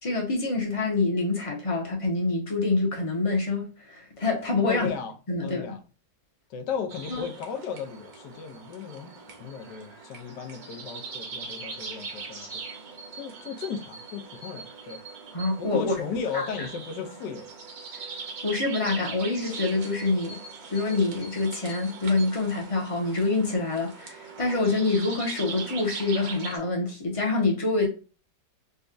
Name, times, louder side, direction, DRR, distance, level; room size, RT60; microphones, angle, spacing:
voice 1, 0.0-4.9 5.3-5.6 7.1-7.2 15.3-16.0 16.3-16.5 18.4-20.4 20.7-27.9, left 3 dB, 30° left, 0.7 m, -26 dB
voice 2, 4.6-5.8 6.5-9.1 9.4-12.5 13.1-15.0 15.6-17.5, left 6 dB, 80° left, 1.3 m, -35 dB
sound 1, 6.9-26.6, right 5 dB, 60° right, 1.3 m, -41 dB
4.1 x 2.3 x 2.4 m
omnidirectional pair, 1.9 m